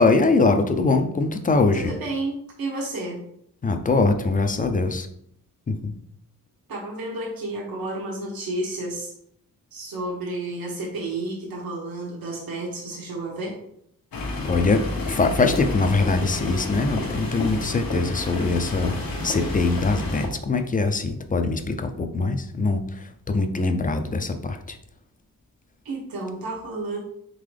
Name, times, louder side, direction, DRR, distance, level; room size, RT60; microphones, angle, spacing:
voice 1, 0.0-1.9 3.6-5.1 5.7-5.9 14.4-14.8 15.1-18.9 19.2-24.8, left 3 dB, 25° left, 7 dB, 0.4 m, -22 dB
voice 2, 1.7-3.2 6.7-9.1 9.7-13.6 25.8-27.0, right 2 dB, 80° right, -3 dB, 1.1 m, -31 dB
sound 1, 14.1-20.3, left 2 dB, 75° left, 1.0 m, -30 dB
3.9 x 3.8 x 3.3 m, 0.70 s
wide cardioid pair, 125°, 35 cm